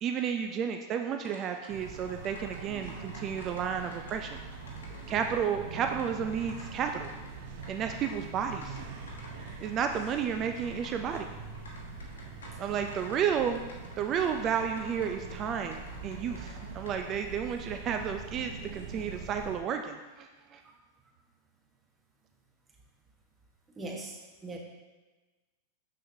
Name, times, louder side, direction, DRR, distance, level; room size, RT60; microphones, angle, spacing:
voice 1, 0.0-4.4 5.1-7.1 7.7-8.8 9.6-11.3 12.6-13.6 14.0-20.6, right 7 dB, 35° right, 5 dB, 0.4 m, -32 dB
sound 1, 1.2-17.2, left 1 dB, 80° left, 1.1 m, -52 dB
sound 2, 1.7-19.6, right 4 dB, 60° right, 0.8 m, -43 dB
voice 2, 23.8-24.6, right 2 dB, 20° right, 1 dB, 1.1 m, -40 dB
6.3 x 6.0 x 2.8 m, 1.2 s
hypercardioid pair, 100°, 0 cm